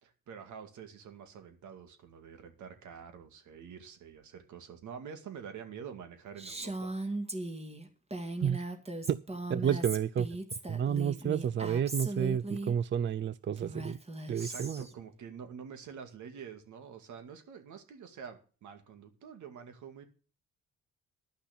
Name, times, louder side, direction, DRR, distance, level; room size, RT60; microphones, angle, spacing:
voice 1, 0.0-6.9 9.3-9.8 14.3-20.0, right 7 dB, 75° right, 2.3 m, -47 dB
Female speech woman speaking, 6.4-12.7 13.6-14.9, right 2 dB, 20° right, 2.0 m, -38 dB
voice 2, 9.5-10.3 10.7-14.0 14.3-14.8, right 8 dB, 40° right, 0.4 m, -30 dB
11.5 x 5.9 x 8.5 m
cardioid pair, 90°, 30 cm